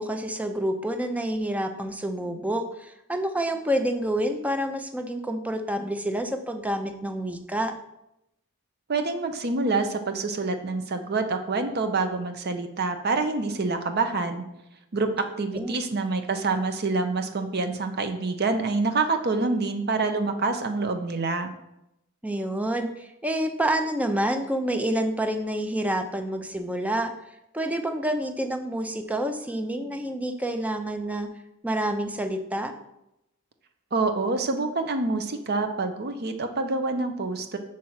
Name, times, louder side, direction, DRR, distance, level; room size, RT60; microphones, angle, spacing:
voice 1, 0.0-7.7 15.5-15.8 22.2-27.1 27.5-31.3 31.6-32.7, right 1 dB, 5° right, 6 dB, 0.6 m, -28 dB
voice 2, 8.9-14.4 14.9-21.5 33.9-37.6, right 3 dB, 50° right, 7 dB, 0.7 m, -26 dB
6.3 x 4.5 x 5.6 m, 0.85 s
head